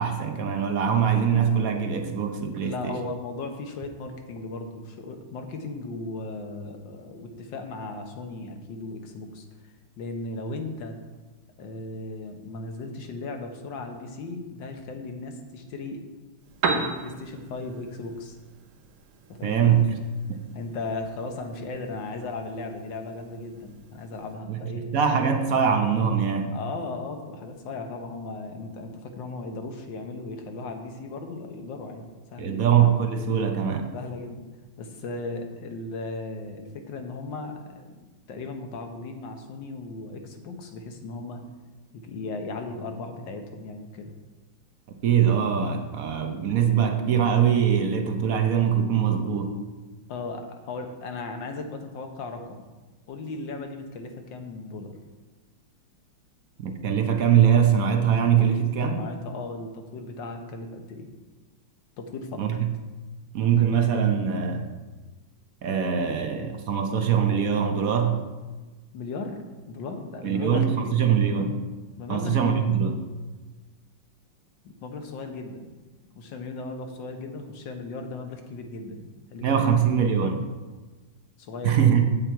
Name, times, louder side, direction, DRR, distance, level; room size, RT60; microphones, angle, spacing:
voice 1, 0.0-3.0 19.4-19.8 20.3-20.4 24.5-24.6 24.9-26.6 32.4-33.9 45.0-49.5 56.6-59.0 62.4-62.7 63.3-64.6 65.6-68.2 70.2-71.6 72.1-73.0 79.4-80.4 81.6-82.1, right 8 dB, 60° right, 5 dB, 1.0 m, -22 dB
voice 2, 2.6-9.4 10.0-11.0 11.6-16.0 16.7-18.3 19.3-19.7 20.5-24.9 26.5-32.7 33.9-34.4 34.8-38.0 38.3-41.4 41.9-44.1 50.1-52.6 53.1-55.0 58.9-61.1 62.0-62.5 68.9-69.4 69.7-70.9 72.0-72.6 74.6-75.7 76.1-79.7 81.4-81.9, left 3 dB, 70° left, 5 dB, 1.6 m, -36 dB
Piano, 16.4-24.4, right 4 dB, 90° right, 1.7 m, -36 dB
8.6 x 7.6 x 4.5 m, 1.2 s
omnidirectional pair, 2.2 m